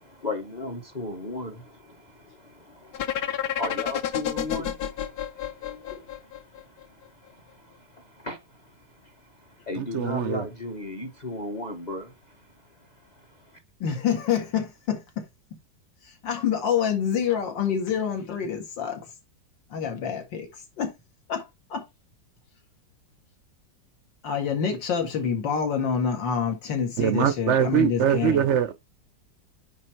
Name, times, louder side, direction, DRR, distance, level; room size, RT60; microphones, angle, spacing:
voice 1, 0.0-5.8 8.0-8.4 9.7-12.1, left 2 dB, 30° left, 0.9 m, -35 dB
sound 1, 2.9-6.8, left 10 dB, 65° left, 1.2 m, -30 dB
voice 2, 5.6-6.0 13.8-15.3 16.2-19.0 19.7-20.5 20.8-20.9 21.3-21.4 21.7-21.8 24.2-28.5, left 7 dB, 80° left, 2.6 m, -27 dB
voice 3, 9.8-10.5 27.0-28.7, right 9 dB, 75° right, 0.6 m, -23 dB
9.6 x 3.8 x 4.5 m
omnidirectional pair, 2.0 m